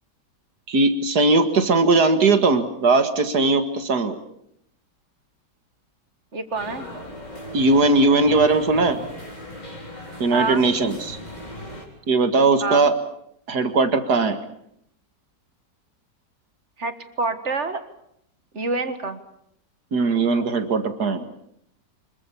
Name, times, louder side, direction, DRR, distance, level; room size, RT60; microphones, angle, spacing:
voice 1, 0.7-4.2 7.5-9.0 10.2-11.2 12.1-12.9 13.5-14.4 19.9-21.2, right 3 dB, 65° right, 9 dB, 2.3 m, -19 dB
voice 2, 6.3-6.9 10.3-10.7 12.6-12.9 16.8-17.8 18.5-19.2 21.2-21.3, right 3 dB, 40° right, 10 dB, 1.9 m, -27 dB
sound 1, 6.5-11.9, left 1 dB, 25° left, 4.2 m, -38 dB
25.5 x 22.5 x 7.0 m, 0.73 s
omnidirectional pair, 1.9 m